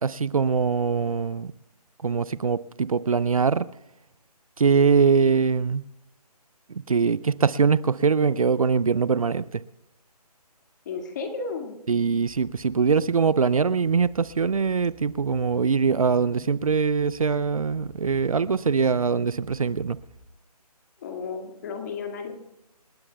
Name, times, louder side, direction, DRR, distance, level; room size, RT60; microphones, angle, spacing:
voice 1, 0.0-1.5 2.0-3.7 4.6-5.8 6.7-9.6 11.9-20.0, right 5 dB, 60° right, 19 dB, 0.5 m, -22 dB
voice 2, 10.9-11.8 21.0-22.3, left 4 dB, 30° left, 4 dB, 2.0 m, -33 dB
sound 1, 12.3-20.3, left 5 dB, 10° left, 0.6 m, -51 dB
28.0 x 17.0 x 2.3 m, 0.90 s
figure-of-eight pair, 150°, 20 cm